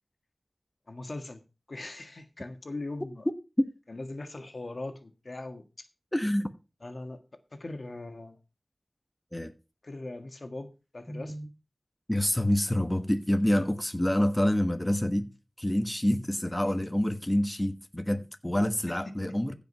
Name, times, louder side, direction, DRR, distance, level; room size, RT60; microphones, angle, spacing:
voice 1, 0.9-1.4 1.7-3.3 3.9-5.9 6.8-7.2 7.5-8.4 9.8-11.4 18.8-19.0, left 2 dB, 65° left, 1.7 m, -40 dB
voice 2, 6.1-6.5 9.3-9.5 11.1-11.5 12.1-15.3 15.6-19.5, left 1 dB, 15° left, 1.2 m, -27 dB
15.0 x 5.2 x 5.4 m
wide cardioid pair, 45°, 0 cm